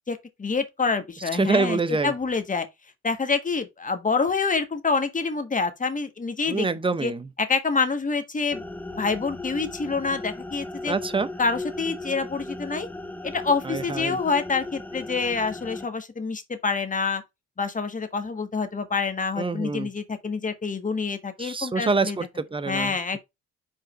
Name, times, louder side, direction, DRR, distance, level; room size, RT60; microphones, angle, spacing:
voice 1, 0.1-2.7 3.0-6.7 7.0-7.1 7.4-8.6 8.9-10.9 11.4-12.9 13.2-17.2 17.6-22.2 22.7-23.2, left 4 dB, 25° left, 1.4 m, -27 dB
voice 2, 1.3-2.1 6.5-7.3 10.9-11.3 13.6-14.2 19.4-19.9 21.4-23.2, right 4 dB, 15° right, 0.8 m, -26 dB
sound 1, 8.5-15.9, left 2 dB, 5° left, 0.5 m, -37 dB
5.2 x 3.8 x 5.2 m
cardioid pair, 90°, 30 cm